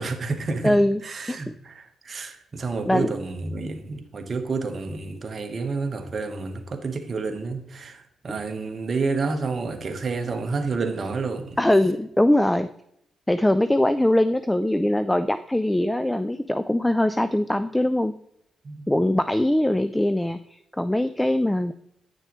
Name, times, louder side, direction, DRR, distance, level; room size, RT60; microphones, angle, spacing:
voice 1, 0.0-0.8 1.0-11.6 18.6-18.9, right 4 dB, 45° right, 6 dB, 1.2 m, -29 dB
voice 2, 0.6-1.0 1.3-1.4 2.8-3.1 11.6-12.7 13.3-18.1 18.9-20.4 20.7-21.7, left 1 dB, 10° left, 13 dB, 0.4 m, -21 dB
10.0 x 6.6 x 3.1 m, 0.75 s
cardioid pair, 75°, 0 cm